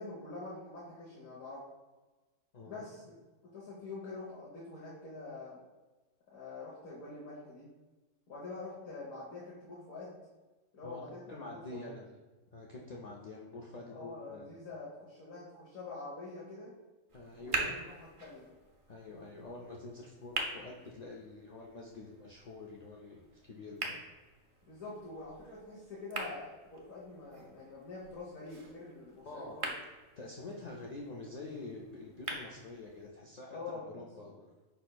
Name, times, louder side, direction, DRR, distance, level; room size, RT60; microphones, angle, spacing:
voice 1, 0.0-1.6 2.6-3.1 3.4-5.6 6.3-7.7 8.3-10.2 10.7-11.2 11.5-11.9 13.9-16.7 17.4-17.7 18.2-18.5 24.6-29.7 33.5-34.4, left 3 dB, 85° left, -8 dB, 1.5 m, -45 dB
voice 2, 10.8-12.2 12.5-14.6 17.1-17.8 18.9-24.0 29.2-29.6 30.2-34.3, left 2 dB, 65° left, -2 dB, 0.4 m, -47 dB
sound 1, 17.1-33.1, right 2 dB, 50° right, 0.4 m, -44 dB
5.3 x 4.2 x 2.2 m, 1.2 s
omnidirectional pair, 1.4 m